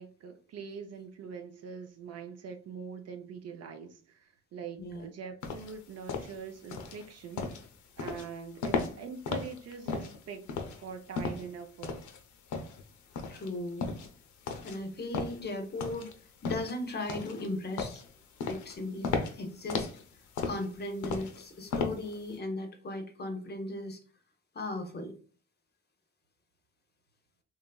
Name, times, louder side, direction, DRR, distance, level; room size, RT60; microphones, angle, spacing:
voice 1, 0.0-7.5 8.0-12.0, right 6 dB, 55° right, 0.5 m, -43 dB
sound 1, 5.4-22.3, left 4 dB, 75° left, 0.6 m, -36 dB
voice 2, 13.3-13.9 14.6-16.1 16.4-18.0 18.5-20.0 20.4-24.0 24.5-25.1, left 2 dB, 35° left, 0.6 m, -37 dB
3.0 x 2.3 x 2.3 m
cardioid pair, 90°, 30 cm